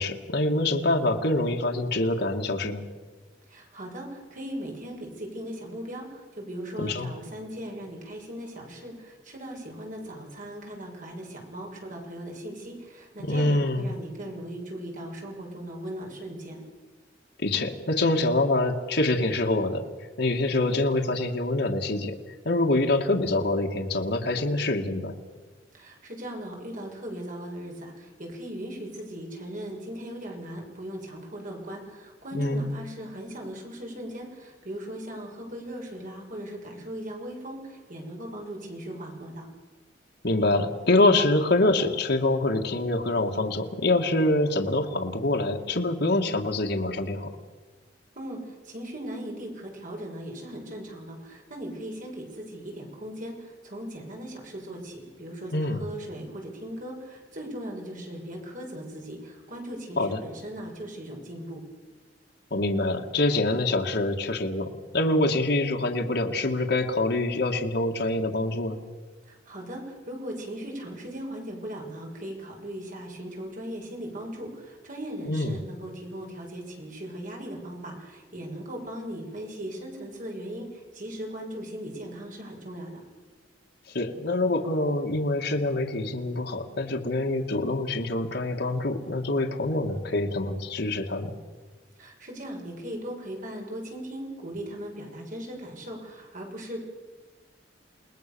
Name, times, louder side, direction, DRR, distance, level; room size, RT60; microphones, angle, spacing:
voice 1, 0.0-2.8 6.8-7.1 13.2-13.9 17.4-19.8 20.2-22.1 22.5-25.2 32.3-32.6 40.2-47.3 55.5-55.8 60.0-60.2 62.5-68.8 75.3-75.6 83.9-91.3, left 2 dB, 65° left, 3 dB, 2.2 m, -25 dB
voice 2, 3.5-16.6 25.7-39.5 48.1-61.6 69.2-83.0 92.0-96.8, right 1 dB, 45° right, 1 dB, 6.6 m, -38 dB
29.5 x 19.5 x 7.1 m, 1.3 s
head